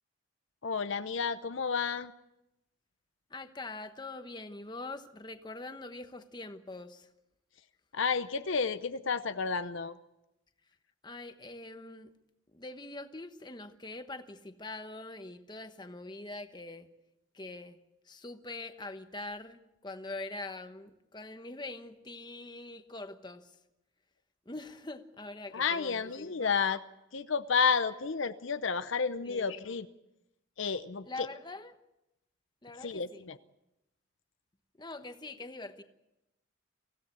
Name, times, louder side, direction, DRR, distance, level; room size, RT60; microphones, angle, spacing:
voice 1, 0.6-2.1 7.9-10.0 25.5-26.8 27.1-29.9 30.6-31.3 32.8-33.4, left 5 dB, 65° left, 11 dB, 0.7 m, -31 dB
voice 2, 3.3-7.1 11.0-12.1 12.5-16.9 17.3-17.8 18.1-23.6 24.5-26.5 29.2-29.6 31.0-31.8 32.6-33.3 34.8-35.8, left 2 dB, 20° left, 8 dB, 1.1 m, -43 dB
24.5 x 16.5 x 8.3 m, 0.92 s
head